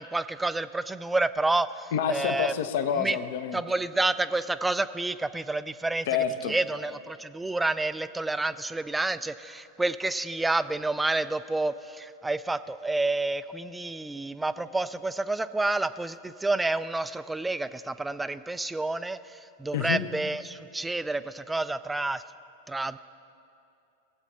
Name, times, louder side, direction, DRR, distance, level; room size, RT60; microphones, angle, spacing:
voice 1, 0.0-2.5 3.0-3.2 3.5-6.1 6.5-22.2 22.7-23.0, right 2 dB, 5° right, 14 dB, 0.4 m, -29 dB
voice 2, 1.9-3.6 6.1-6.5 19.7-20.0, left 8 dB, 55° left, 10 dB, 0.7 m, -28 dB
19.5 x 8.1 x 4.3 m, 2.8 s
figure-of-eight pair, 90°, 0 cm